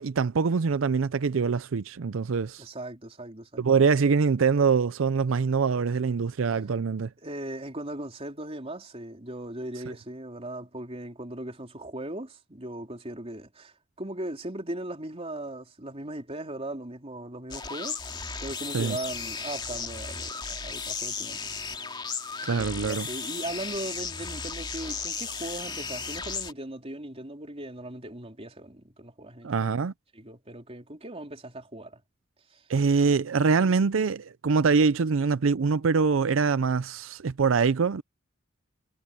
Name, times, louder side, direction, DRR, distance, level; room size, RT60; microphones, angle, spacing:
voice 1, 0.0-2.7 3.6-7.1 18.7-19.0 22.4-23.1 29.4-29.9 32.7-38.0, right 5 dB, 85° right, 0.5 m, -24 dB
voice 2, 2.6-3.8 7.2-21.9 22.5-29.7 30.1-32.0 32.5-32.6, right 1 dB, 30° right, 3.8 m, -38 dB
sound 1, 17.5-26.5, left 5 dB, 25° left, 2.8 m, -35 dB
head